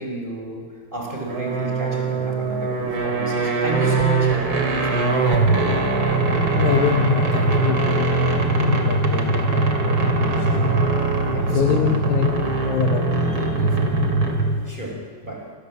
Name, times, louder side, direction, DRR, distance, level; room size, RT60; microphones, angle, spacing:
voice 1, 0.0-5.5 10.3-10.8 11.3-11.9 14.6-15.5, right 1 dB, 10° right, 0 dB, 4.9 m, -32 dB
sound 1, 1.3-14.7, right 3 dB, 30° right, 3.3 m, -21 dB
voice 2, 6.6-10.4 11.5-14.2, left 8 dB, 75° left, 5 dB, 1.7 m, -25 dB
27.5 x 26.5 x 7.6 m, 2.1 s
omnidirectional pair, 5.0 m